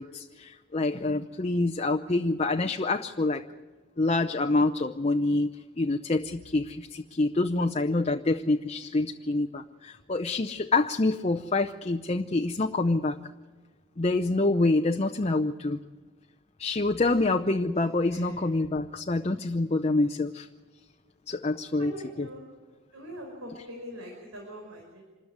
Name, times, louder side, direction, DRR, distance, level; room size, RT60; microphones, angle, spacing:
voice 1, 0.0-3.4 4.0-5.5 5.8-13.2 14.0-15.8 16.6-20.5 21.3-21.9 22.2-22.3, left 2 dB, 30° left, 7 dB, 0.6 m, -26 dB
voice 2, 18.1-18.5 21.8-22.4 22.9-25.0, equal, 85° right, 0 dB, 5.2 m, -42 dB
26.5 x 14.0 x 9.6 m, 1.4 s
head